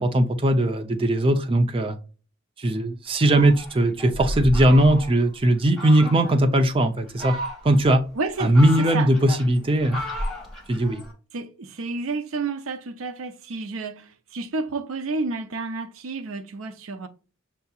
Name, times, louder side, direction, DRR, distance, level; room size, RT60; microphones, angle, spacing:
voice 1, 0.0-2.0 2.6-7.3 7.6-8.0 8.4-10.0 10.7-11.0, right 1 dB, 25° right, 0.5 m, -19 dB
Fowl, 3.2-5.3 5.8-6.4 7.0-7.9 8.3-11.1, equal, ahead, 1.5 m, -33 dB
voice 2, 8.1-9.1 11.3-17.1, right 3 dB, 80° right, 0.6 m, -30 dB
6.8 x 2.7 x 2.3 m
head